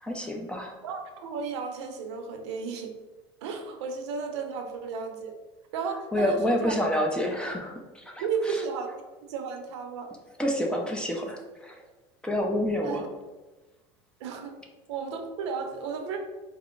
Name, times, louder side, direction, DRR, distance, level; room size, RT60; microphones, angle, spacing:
voice 1, 0.0-0.8 6.1-8.6 10.4-11.8 12.2-13.1, left 1 dB, 5° left, 1 dB, 0.5 m, -28 dB
voice 2, 0.8-2.9 3.4-5.3 5.7-6.7 8.2-8.9 9.3-10.1 12.8-13.0 14.2-14.5 14.9-16.2, right 5 dB, 85° right, 5 dB, 0.6 m, -33 dB
4.3 x 2.0 x 3.7 m, 1.2 s
supercardioid pair, 125°, 14 cm